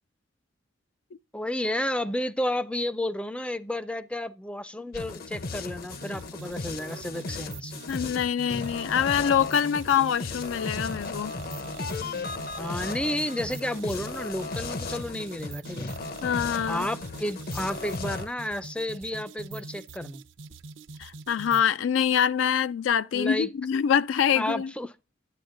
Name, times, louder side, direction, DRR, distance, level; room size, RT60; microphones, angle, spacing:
voice 1, 1.3-7.7 12.6-15.9 16.7-20.2 23.1-23.5 24.4-24.9, left 1 dB, 5° left, 0.4 m, -31 dB
sound 1, 4.9-18.3, left 3 dB, 50° left, 0.7 m, -36 dB
sound 2, 5.9-21.8, right 3 dB, 75° right, 0.7 m, -44 dB
voice 2, 7.9-11.3 16.2-16.9 21.0-24.7, left 8 dB, 75° left, 0.4 m, -25 dB
10.0 x 8.7 x 2.5 m
head